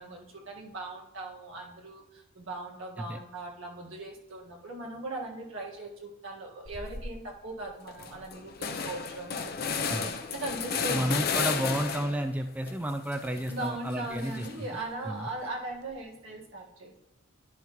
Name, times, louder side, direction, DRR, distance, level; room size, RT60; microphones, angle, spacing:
voice 1, 0.0-9.5 10.3-11.4 13.5-17.0, right 2 dB, 85° right, -2 dB, 1.7 m, -39 dB
Large Metal Door Opening, 6.6-7.1 7.5-7.6 7.9-12.3 12.7-14.8, left 5 dB, 50° left, 0.6 m, -34 dB
voice 2, 10.9-14.7 15.0-15.3, right 1 dB, 10° right, 5 dB, 0.3 m, -32 dB
11.5 x 5.7 x 3.1 m, 0.96 s
head